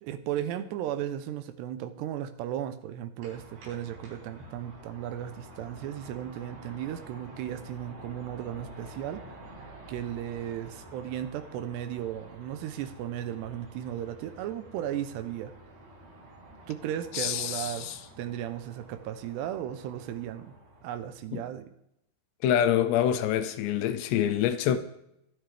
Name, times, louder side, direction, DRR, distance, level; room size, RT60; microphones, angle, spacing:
voice 1, 0.0-9.2 9.9-15.5 16.7-17.9 18.2-20.5 20.8-21.7, right 11 dB, 80° right, 2.6 m, -35 dB
sound 1, 3.2-21.2, right 1 dB, 60° right, 6.8 m, -49 dB
voice 2, 17.1-18.0 21.3-21.4 22.4-24.8, left 10 dB, 80° left, 2.6 m, -26 dB
24.0 x 9.6 x 3.4 m
omnidirectional pair, 5.5 m